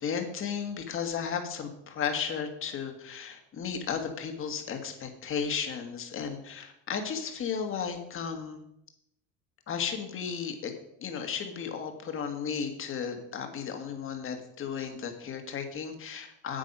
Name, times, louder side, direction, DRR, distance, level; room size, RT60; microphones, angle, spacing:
voice 1, 0.0-8.6 9.7-10.7 11.0-16.6, left 6 dB, 30° left, 5 dB, 1.6 m, -34 dB
8.9 x 8.7 x 5.4 m, 0.79 s
cardioid pair, 155°, 41 cm